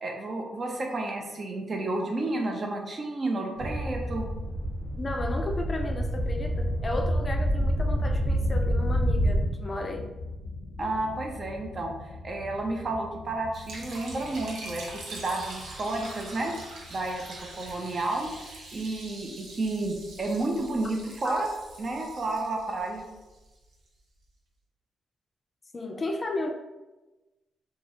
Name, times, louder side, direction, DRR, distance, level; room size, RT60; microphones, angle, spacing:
voice 1, 0.0-4.3 10.8-16.5 16.9-18.3 18.7-21.5 21.8-23.0, right 2 dB, 45° right, 1 dB, 0.5 m, -31 dB
sound 1, 3.6-9.5, equal, 60° right, 1.1 m, -27 dB
voice 2, 5.0-10.1 21.2-21.4 25.7-26.5, left 2 dB, 35° left, 3 dB, 0.4 m, -33 dB
sound 2, 6.8-19.1, left 3 dB, 90° left, 0.5 m, -44 dB
Liquid, 13.5-23.7, right 2 dB, 85° right, 0.6 m, -44 dB
2.9 x 2.3 x 2.9 m, 1.1 s
cardioid pair, 80°, 0 cm